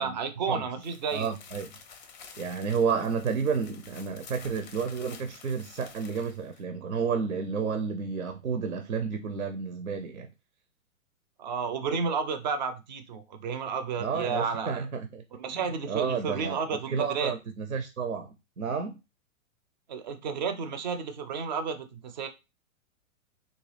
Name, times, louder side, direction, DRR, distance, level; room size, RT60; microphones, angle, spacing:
voice 1, 0.0-1.4 11.4-14.8 15.4-17.3 19.9-22.3, right 5 dB, 35° right, 0.5 m, -32 dB
sound 1, 0.8-6.6, left 6 dB, 35° left, 0.5 m, -50 dB
voice 2, 1.1-1.7 2.4-10.3 14.0-15.2 15.5-15.6 15.9-16.6 16.9-19.0, right 6 dB, 75° right, 0.6 m, -31 dB
3.8 x 2.3 x 3.2 m
figure-of-eight pair, 115°, 42 cm